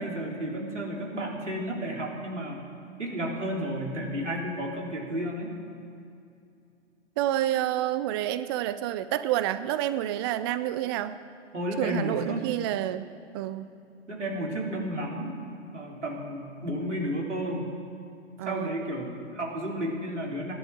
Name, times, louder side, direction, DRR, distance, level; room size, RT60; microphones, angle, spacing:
voice 1, 0.0-2.6 3.0-5.5 11.5-12.4 14.1-15.3 15.7-17.7 18.4-20.5, equal, 85° right, -2 dB, 3.9 m, -32 dB
voice 2, 7.2-11.2 11.8-13.1 13.3-13.7 18.4-18.8, right 13 dB, 25° right, 13 dB, 0.3 m, -29 dB
16.5 x 11.0 x 7.6 m, 2.5 s
figure-of-eight pair, 110°, 35 cm